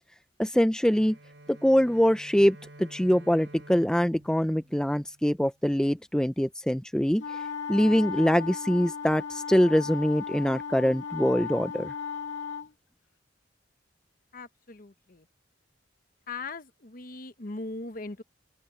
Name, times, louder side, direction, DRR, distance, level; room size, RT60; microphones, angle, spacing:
voice 1, 0.4-1.2 1.5-7.2 7.7-11.9, equal, 5° left, 0.5 m, -24 dB
Bowed string instrument, 0.9-5.6, right 1 dB, 70° right, 7.6 m, -51 dB
sound 1, 7.2-12.7, left 6 dB, 70° left, 2.7 m, -36 dB
voice 2, 14.3-15.2 16.3-18.2, left 3 dB, 45° left, 1.1 m, -39 dB
open air
head